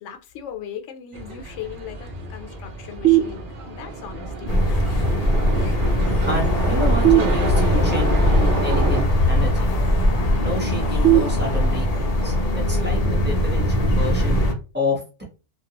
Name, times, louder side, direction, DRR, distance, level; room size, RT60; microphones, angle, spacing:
voice 1, 0.0-4.5, left 8 dB, 70° left, 0.9 m, -38 dB
sound 1, 1.1-9.0, right 3 dB, 55° right, 0.6 m, -29 dB
sound 2, 3.0-4.0 7.0-8.0 11.0-12.0, right 14 dB, 80° right, 0.9 m, -21 dB
sound 3, 4.5-14.5, left 1 dB, 90° left, 0.3 m, -20 dB
voice 2, 6.3-9.7 10.4-14.4 14.7-15.2, left 1 dB, 10° right, 0.8 m, -29 dB
2.3 x 2.2 x 2.8 m
omnidirectional pair, 1.3 m